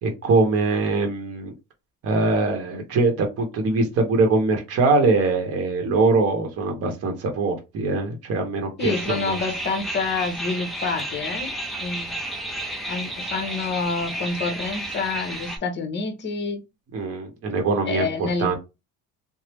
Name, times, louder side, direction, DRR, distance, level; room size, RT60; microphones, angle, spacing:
voice 1, 0.0-1.5 2.0-9.4 16.9-18.1 18.4-18.5, right 3 dB, 50° right, 3 dB, 0.9 m, -22 dB
voice 2, 8.8-11.5 11.8-12.2 12.9-16.6 17.9-18.5, left 4 dB, 35° left, 6 dB, 0.8 m, -28 dB
sound 1, 8.8-15.6, right 1 dB, ahead, 0.5 m, -32 dB
3.3 x 2.0 x 3.0 m, 0.25 s
cardioid pair, 140°, 31 cm